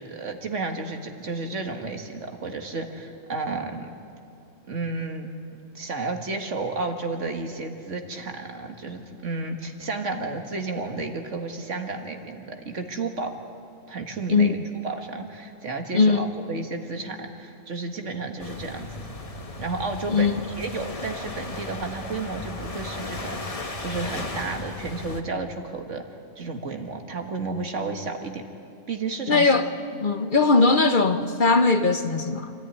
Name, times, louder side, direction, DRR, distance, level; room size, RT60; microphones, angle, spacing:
voice 1, 0.0-3.9 4.7-5.3 5.7-13.3 13.9-14.6 14.8-19.1 19.6-26.0 26.4-28.4 28.9-29.5, right 3 dB, 70° right, 5 dB, 2.0 m, -32 dB
voice 2, 15.9-16.3 20.1-20.4 29.3-29.7 30.0-32.5, left 3 dB, 45° left, 8 dB, 0.9 m, -20 dB
sound 1, 18.4-25.2, left 2 dB, 30° left, 1.2 m, -36 dB
26.0 x 14.0 x 10.0 m, 2.6 s
omnidirectional pair, 1.3 m